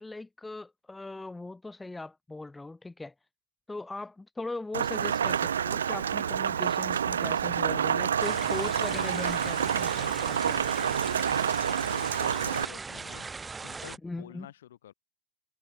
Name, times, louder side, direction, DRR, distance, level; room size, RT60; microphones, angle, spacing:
voice 1, 0.0-3.1 3.7-9.9 10.2-10.6 14.0-14.5, left 2 dB, 10° left, 3.6 m, -39 dB
Rain, 4.7-12.6, right 8 dB, 65° right, 0.8 m, -28 dB
sound 1, 8.2-14.0, right 4 dB, 10° right, 5.1 m, -39 dB
voice 2, 8.5-9.0 11.6-13.3 13.6-14.9, left 12 dB, 60° left, 5.0 m, -48 dB
figure-of-eight pair, 90°, 0 cm